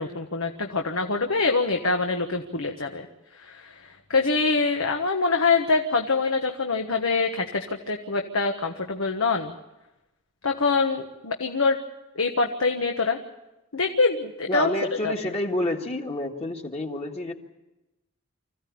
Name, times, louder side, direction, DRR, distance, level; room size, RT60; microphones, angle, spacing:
voice 1, 0.0-3.1 3.3-9.5 10.4-11.8 12.1-13.2 13.7-14.7 15.0-15.1, left 4 dB, 80° left, 4 dB, 1.3 m, -25 dB
voice 2, 14.5-17.3, left 1 dB, 30° left, 2 dB, 1.9 m, -29 dB
25.5 x 15.5 x 8.6 m, 0.99 s
head